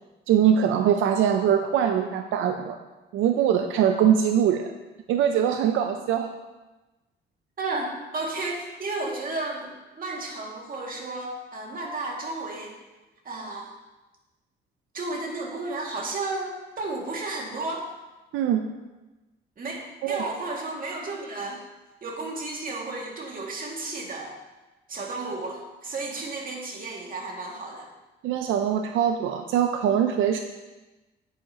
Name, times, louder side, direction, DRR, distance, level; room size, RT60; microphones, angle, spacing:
voice 1, 0.3-2.8 3.1-4.7 5.1-6.3 18.3-18.7 20.0-20.2 28.2-30.4, right 9 dB, 90° right, 6 dB, 0.6 m, -22 dB
voice 2, 7.6-12.8 13.2-13.7 14.9-17.9 19.6-19.8 20.1-21.6 22.0-24.4 24.9-27.9, right 2 dB, 45° right, -1 dB, 2.2 m, -33 dB
9.9 x 9.2 x 2.9 m, 1.1 s
cardioid pair, 90°, 20 cm